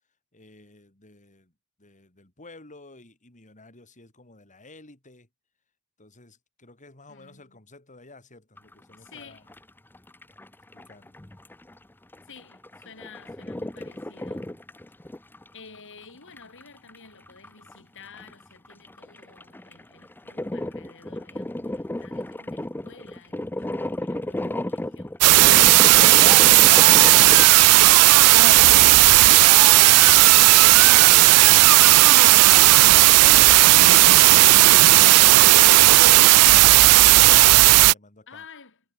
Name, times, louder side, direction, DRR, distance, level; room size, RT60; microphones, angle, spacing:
voice 1, 0.3-1.5 1.8-5.3 6.0-9.5 10.7-11.2 35.8-38.4, left 2 dB, 35° left, 4.3 m, -52 dB
voice 2, 7.1-7.6 9.0-9.5 12.2-14.7 15.5-25.2 38.3-38.8, left 5 dB, 60° left, 5.9 m, -51 dB
sound 1, 8.6-9.7 9.9-11.8 12.1-15.5 15.7-15.8 16.4-16.6 16.9-17.0 17.3-17.8 18.1-27.5, left 1 dB, 10° left, 0.6 m, -33 dB
sound 2, 25.2-37.9, right 18 dB, 90° right, 0.4 m, -13 dB
head